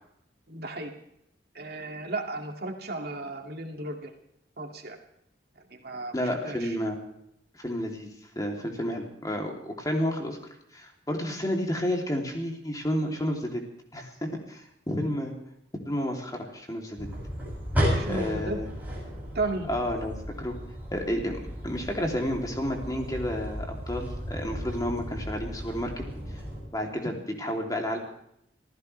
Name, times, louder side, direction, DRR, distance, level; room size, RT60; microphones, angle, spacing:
voice 1, 0.5-0.9 1.5-4.1 4.6-5.0 5.7-6.1 6.4-6.7 17.9-18.6 19.3-19.7, right 2 dB, 60° right, 2 dB, 2.4 m, -34 dB
voice 2, 6.1-7.0 7.5-8.1 8.3-10.4 10.7-13.6 13.9-15.3 15.8-17.1 18.1-18.7 19.7-20.6 20.9-26.0 26.7-28.0, equal, 20° left, 1 dB, 3.1 m, -31 dB
sound 1, 17.0-26.6, equal, 10° right, 7.8 m, -34 dB
26.5 x 15.5 x 3.4 m, 0.76 s
head